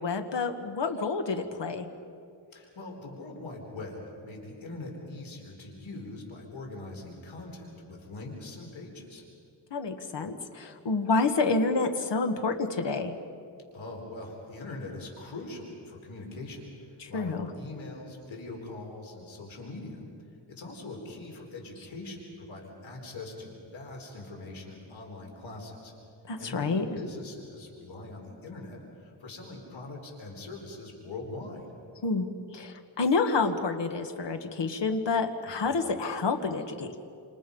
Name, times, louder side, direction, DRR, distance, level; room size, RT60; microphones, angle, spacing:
voice 1, 0.0-1.9 9.7-13.1 17.0-17.5 26.3-27.0 32.0-37.0, left 4 dB, 65° left, 6 dB, 1.7 m, -28 dB
voice 2, 2.5-9.2 13.7-20.0 20.5-25.9 26.4-31.7 35.4-35.7, left 2 dB, 90° left, 0 dB, 4.5 m, -42 dB
28.0 x 27.0 x 5.5 m, 2.4 s
wide cardioid pair, 140°, 45 cm